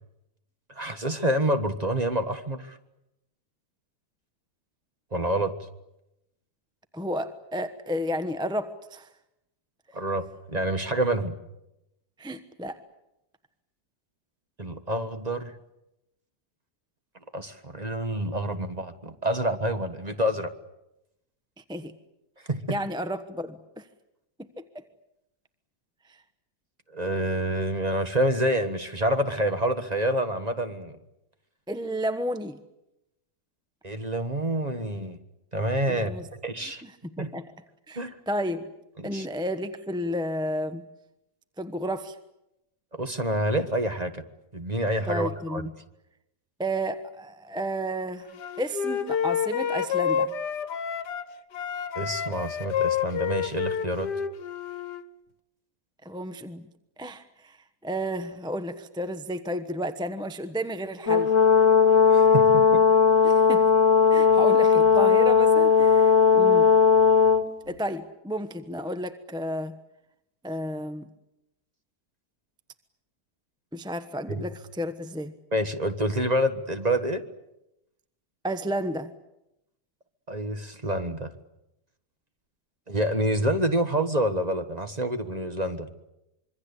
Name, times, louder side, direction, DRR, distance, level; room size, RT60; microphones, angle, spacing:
voice 1, 0.7-2.8 5.1-5.5 9.9-11.3 14.6-15.5 17.3-20.5 22.5-22.8 26.9-31.0 33.8-35.2 35.5-36.1 36.4-36.8 37.2-37.3 37.9-38.2 39.0-39.3 42.9-44.2 44.5-45.6 51.9-54.1 62.1-62.8 74.3-74.4 75.5-77.2 80.3-81.3 82.9-85.9, right 1 dB, 25° right, 8 dB, 1.5 m, -27 dB
voice 2, 6.9-9.1 12.2-12.8 21.6-21.9 22.7-23.9 24.6-24.8 26.1-26.2 31.7-32.6 35.9-36.3 36.6-36.9 37.2-37.4 37.9-38.7 39.0-40.8 41.6-42.2 45.1-45.7 46.6-50.3 56.0-56.6 57.0-57.6 57.8-61.3 63.2-63.6 64.1-66.7 67.7-69.8 70.4-71.1 73.7-75.3 78.4-79.1, equal, 5° right, 10 dB, 0.9 m, -32 dB
Wind instrument woodwind instrument, 48.4-51.3 51.5-55.0, left 8 dB, 80° left, 1.7 m, -29 dB
Brass instrument, 61.1-67.4, left 6 dB, 55° left, 1.7 m, -18 dB
26.0 x 23.5 x 8.4 m, 0.88 s
omnidirectional pair, 1.8 m